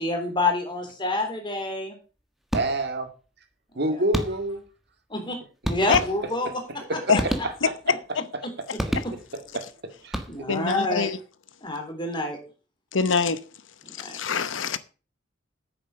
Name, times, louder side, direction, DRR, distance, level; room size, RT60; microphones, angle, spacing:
voice 1, 0.0-2.0 3.7-4.0 5.1-5.4 5.7-6.6 6.9-7.0 9.0-9.1 10.3-11.1 11.6-12.4 13.8-14.2, left 2 dB, 25° left, 3.6 m, -28 dB
sound 1, 2.5-3.1 4.1-4.7 5.6-6.5 7.1-7.9 8.8-9.5 10.0-10.7, equal, ahead, 1.4 m, -31 dB
voice 2, 2.5-3.1 3.7-4.6 6.4-6.5 6.9-7.5 7.9-8.0 9.5-10.2, right 1 dB, 60° right, 2.3 m, -28 dB
voice 3, 10.5-11.2 12.9-13.4 14.0-14.8, left 5 dB, 85° left, 0.9 m, -24 dB
9.2 x 7.4 x 6.5 m
head